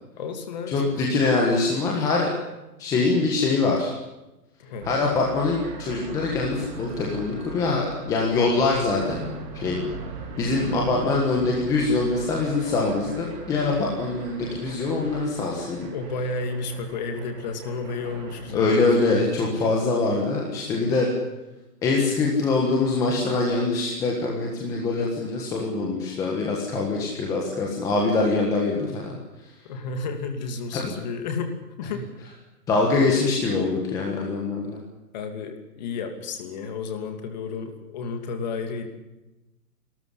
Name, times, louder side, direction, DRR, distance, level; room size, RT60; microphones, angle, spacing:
voice 1, 0.2-0.8 4.6-4.9 15.9-18.8 29.7-32.1 35.1-38.9, left 4 dB, 25° left, 6 dB, 2.7 m, -32 dB
voice 2, 0.7-2.3 2.8-3.9 4.8-9.2 9.5-9.8 10.4-15.9 18.5-21.1 21.8-29.1 30.7-30.9 32.7-34.8, left 3 dB, 5° left, -2 dB, 1.6 m, -24 dB
sound 1, 4.8-18.5, right 4 dB, 30° right, 4.0 m, -39 dB
27.0 x 13.5 x 10.0 m, 1.0 s
hypercardioid pair, 170°, 49 cm